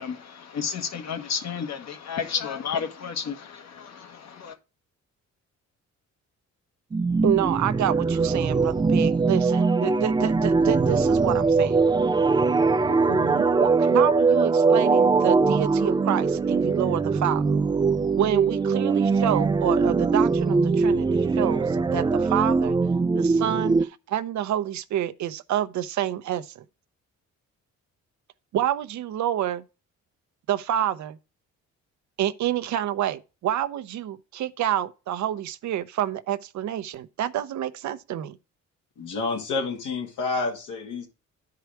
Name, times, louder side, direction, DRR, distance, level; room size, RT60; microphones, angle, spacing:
voice 1, 0.0-4.6, left 7 dB, 60° left, 1.4 m, -32 dB
sound 1, 6.9-23.8, right 4 dB, 15° right, 0.3 m, -21 dB
voice 2, 7.2-11.8 12.9-17.4 18.2-22.8 23.1-26.5 28.5-29.6 30.5-31.2 32.2-38.4, right 11 dB, 70° right, 0.7 m, -28 dB
voice 3, 39.0-41.1, left 3 dB, 85° left, 2.3 m, -29 dB
10.5 x 4.8 x 4.6 m
cardioid pair, 90°, 30 cm